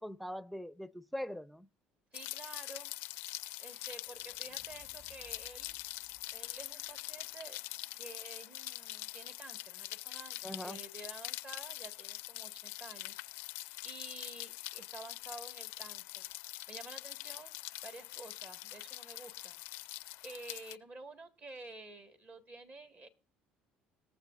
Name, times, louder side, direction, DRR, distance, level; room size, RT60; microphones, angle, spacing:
voice 1, 0.0-1.7 10.4-10.8, equal, ahead, 0.6 m, -42 dB
Rain, 2.1-20.8, left 20 dB, 70° left, 0.4 m, -44 dB
voice 2, 2.1-2.9 3.6-5.8 6.3-7.6 7.9-10.4 10.6-13.2 13.4-17.5 17.8-19.6 19.9-23.1, right 3 dB, 40° right, 1.7 m, -51 dB
sound 1, 2.7-7.3, right 3 dB, 60° right, 6.9 m, -66 dB
Wind instrument woodwind instrument, 3.9-8.3, right 1 dB, 85° right, 3.4 m, -77 dB
21.5 x 7.4 x 2.5 m
hypercardioid pair, 65°, 4 cm